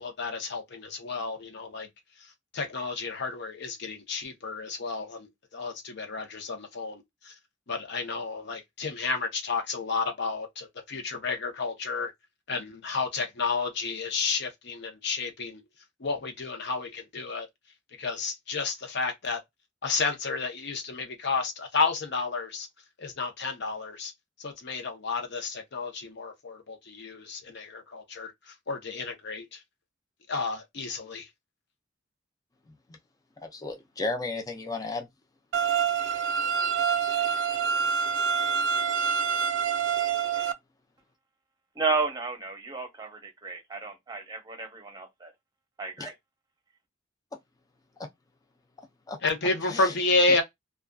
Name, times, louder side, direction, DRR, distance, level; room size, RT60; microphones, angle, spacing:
voice 1, 0.0-1.9 2.2-7.3 7.7-12.1 12.5-15.6 16.0-17.5 18.0-19.4 19.8-22.7 23.0-24.1 24.4-29.6 30.3-31.3 49.2-50.4, left 4 dB, 60° left, 0.7 m, -31 dB
voice 2, 33.4-35.1 46.0-46.1 49.1-49.2 49.7-49.9, left 3 dB, 20° left, 0.4 m, -33 dB
sound 1, 35.5-40.5, right 6 dB, 65° right, 0.3 m, -26 dB
voice 3, 41.8-45.3 45.8-46.1, right 4 dB, 20° right, 0.8 m, -32 dB
2.5 x 2.3 x 2.2 m
head